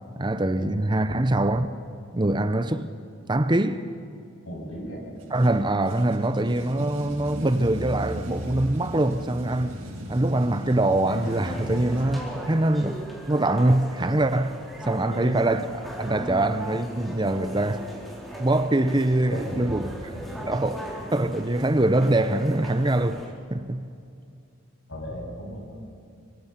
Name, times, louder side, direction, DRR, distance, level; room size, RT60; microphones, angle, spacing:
voice 1, 0.2-1.7 2.1-2.9 3.3-3.8 5.3-9.8 10.1-14.5 14.8-15.7 16.0-17.9 18.4-19.9 20.5-20.8 21.1-23.2 23.5-23.9, right 1 dB, 20° right, 0.7 m, -23 dB
voice 2, 4.4-5.0 15.1-15.5 19.3-19.6 20.1-20.4 24.9-25.6, equal, 75° left, 7.4 m, -36 dB
sound 1, 5.1-12.0, equal, 80° right, 7.1 m, -37 dB
sound 2, 11.0-23.3, right 1 dB, ahead, 4.1 m, -39 dB
26.5 x 24.0 x 5.8 m
head